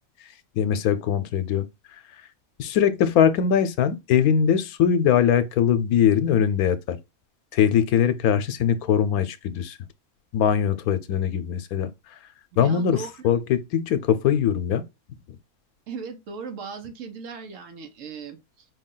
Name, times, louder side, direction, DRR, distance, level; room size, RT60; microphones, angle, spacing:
voice 1, 0.5-1.6 2.6-7.0 7.5-9.8 10.3-11.9 12.6-14.8, left 8 dB, 90° left, 1.1 m, -21 dB
voice 2, 12.5-13.1 15.9-18.7, right 5 dB, 65° right, 1.1 m, -37 dB
5.2 x 2.3 x 3.7 m
omnidirectional pair, 1.5 m